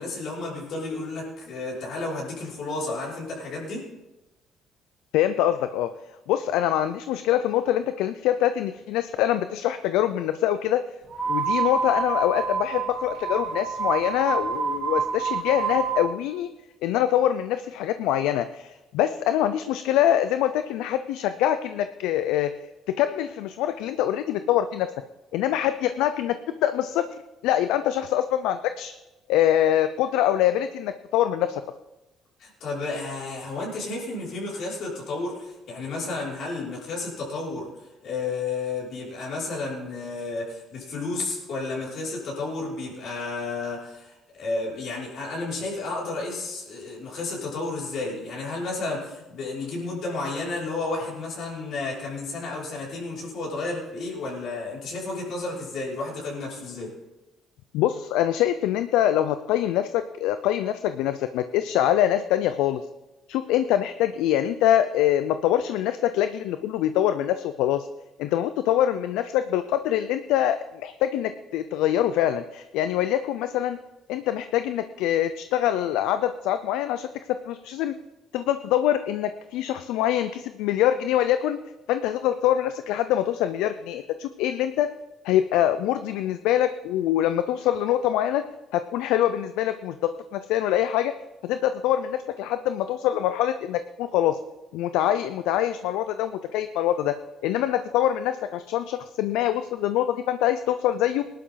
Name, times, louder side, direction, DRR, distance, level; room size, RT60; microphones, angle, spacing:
voice 1, 0.0-3.8 32.4-37.7 38.0-56.9, left 3 dB, 65° left, -5 dB, 5.8 m, -32 dB
voice 2, 5.1-5.9 6.3-10.8 11.3-16.5 16.8-22.5 23.0-24.9 25.3-27.0 27.4-28.9 29.3-31.6 57.7-62.8 63.3-67.9 68.2-73.8 74.1-77.1 77.5-77.9 78.3-81.6 81.9-84.9 85.2-88.4 88.7-91.1 91.4-94.4 94.7-97.1 97.4-101.2, left 11 dB, 85° left, 11 dB, 0.5 m, -24 dB
sound 1, 11.1-16.1, right 5 dB, 50° right, 3.0 m, -27 dB
20.0 x 11.5 x 3.9 m, 1.0 s
supercardioid pair, 75°, 0 cm